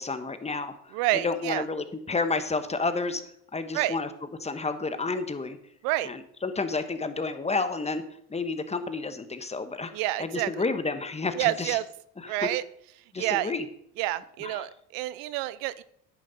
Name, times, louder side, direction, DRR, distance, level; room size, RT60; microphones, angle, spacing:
voice 1, 0.0-3.2 3.5-4.1 4.4-5.6 6.0-8.0 8.3-9.9 10.2-11.8 12.2-12.5 13.1-13.6 14.4-14.7, left 3 dB, 20° left, 10 dB, 1.2 m, -30 dB
voice 2, 0.9-1.6 3.7-4.0 5.8-6.1 9.9-10.5 11.4-11.8 12.3-12.6 13.2-13.5 14.0-15.8, right 15 dB, 75° right, 18 dB, 0.6 m, -28 dB
10.5 x 9.1 x 4.1 m, 0.69 s
supercardioid pair, 80°, 36 cm